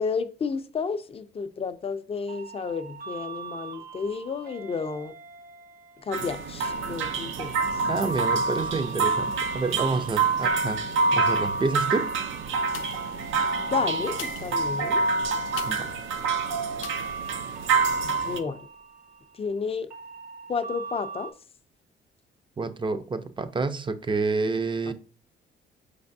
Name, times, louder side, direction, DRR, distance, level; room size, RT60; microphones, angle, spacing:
voice 1, 0.0-5.1 6.0-7.9 13.6-15.0 18.0-18.7 19.3-19.9 20.5-21.3 24.9-25.0, left 5 dB, 30° left, 0.4 m, -32 dB
sound 1, 2.3-21.3, right 5 dB, 50° right, 0.8 m, -41 dB
sound 2, 6.1-18.4, right 4 dB, 80° right, 0.5 m, -27 dB
voice 2, 7.9-10.8 11.1-12.1 15.7-15.9 22.6-24.9, right 3 dB, 25° right, 0.5 m, -28 dB
sound 3, 12.7-13.2 14.1-16.0 16.8-17.2 17.7-17.8, left 10 dB, 85° left, 0.5 m, -42 dB
5.1 x 3.3 x 2.6 m
cardioid pair, 90°, 20 cm